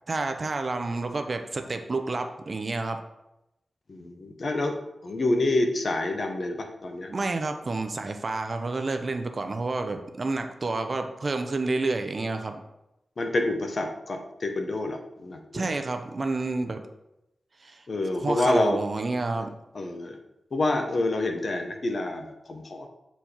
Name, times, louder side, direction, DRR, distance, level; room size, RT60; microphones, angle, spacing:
voice 1, 0.1-3.0 7.1-12.6 15.5-16.8 17.6-17.8 18.2-19.5, right 3 dB, 40° right, 6 dB, 0.6 m, -29 dB
voice 2, 3.9-4.8 5.0-7.1 13.2-15.7 17.9-18.8 19.7-20.2 20.5-22.9, left 2 dB, 50° left, 4 dB, 0.9 m, -27 dB
6.8 x 4.6 x 4.4 m, 0.91 s
wide cardioid pair, 115°, 0 cm